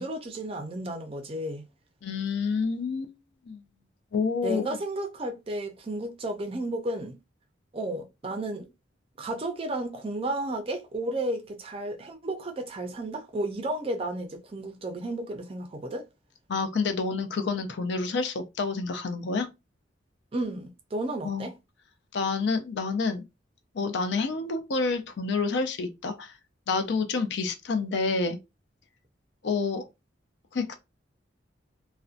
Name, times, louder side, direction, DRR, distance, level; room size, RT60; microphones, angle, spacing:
voice 1, 0.0-1.7 4.4-7.2 7.7-8.7 9.2-16.1 20.3-21.5, right 1 dB, 30° right, 0.4 m, -33 dB
voice 2, 2.0-3.1 3.5-3.6 4.1-4.7 16.5-19.5 21.2-21.5 22.1-23.2 23.7-26.3 26.7-28.4 29.4-29.8 30.5-30.8, left 4 dB, 65° left, 0.4 m, -28 dB
2.6 x 2.1 x 2.4 m
head